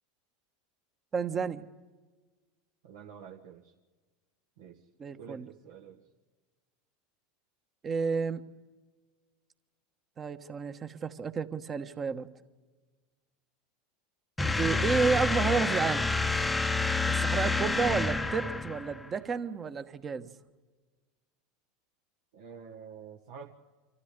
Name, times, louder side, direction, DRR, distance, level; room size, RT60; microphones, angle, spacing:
voice 1, 1.1-1.7 5.0-5.5 7.8-8.4 10.2-12.3 14.6-16.1 17.1-20.3, right 5 dB, 30° right, 10 dB, 1.3 m, -31 dB
voice 2, 2.8-3.7 4.6-4.8 5.1-6.0 22.3-23.5, right 7 dB, 75° right, 0 dB, 1.6 m, -48 dB
sound 1, 14.4-19.1, left 3 dB, 10° left, 0.9 m, -28 dB
25.5 x 14.5 x 8.2 m, 1.3 s
hypercardioid pair, 90°, 0 cm